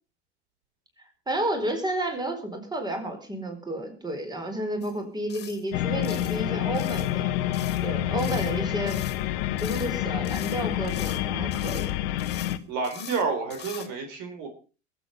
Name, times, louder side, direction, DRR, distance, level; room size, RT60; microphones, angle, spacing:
voice 1, 1.3-7.3 7.8-9.0 9.6-11.9, right 1 dB, 10° right, 5 dB, 4.6 m, -31 dB
sound 1, 4.8-5.0 5.3-5.6 6.0-6.4 6.7-7.1 7.5-7.9 8.2-8.6 8.9-9.2 9.6-10.0 10.2-11.2 11.5-11.9 12.2-12.6 12.8-13.2 13.5-13.9, left 9 dB, 30° left, 2.7 m, -43 dB
sound 2, 5.7-12.6, left 13 dB, 60° left, 1.2 m, -28 dB
voice 2, 12.7-14.5, right 4 dB, 55° right, 5 dB, 3.9 m, -29 dB
22.5 x 8.1 x 5.5 m, 0.35 s
hypercardioid pair, 80°, 33 cm